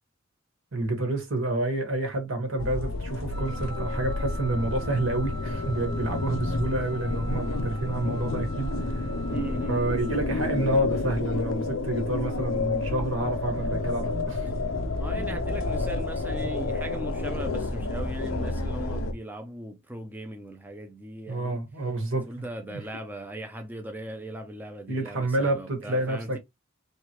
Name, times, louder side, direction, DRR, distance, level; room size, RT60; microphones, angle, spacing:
voice 1, 0.7-9.1 9.7-14.5 21.3-22.8 24.9-26.4, right 2 dB, 75° right, 1.5 m, -29 dB
sound 1, 2.6-19.1, left 2 dB, 85° left, 0.7 m, -30 dB
Wind instrument woodwind instrument, 3.3-10.2, equal, 55° right, 1.1 m, -44 dB
voice 2, 9.3-9.9 14.9-21.6 22.3-26.4, right 1 dB, 10° right, 0.5 m, -38 dB
3.5 x 3.2 x 2.9 m
head